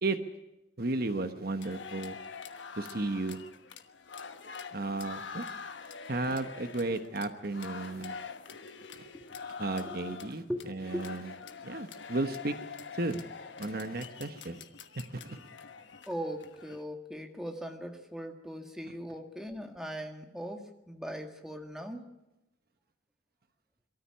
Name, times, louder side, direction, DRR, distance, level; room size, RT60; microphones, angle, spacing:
voice 1, 0.8-2.2 2.8-3.4 4.7-5.4 6.1-8.2 9.6-11.3 11.6-12.5 12.9-13.2 13.6-14.6 15.0-15.4, right 2 dB, 50° right, 8 dB, 1.1 m, -34 dB
sound 1, 1.6-16.8, left 5 dB, 75° left, 1.3 m, -45 dB
voice 2, 9.0-9.4 9.8-10.1 10.5-10.6 10.9-11.0 16.1-22.1, equal, 5° right, 3 dB, 1.8 m, -39 dB
23.0 x 13.5 x 10.0 m, 0.95 s
head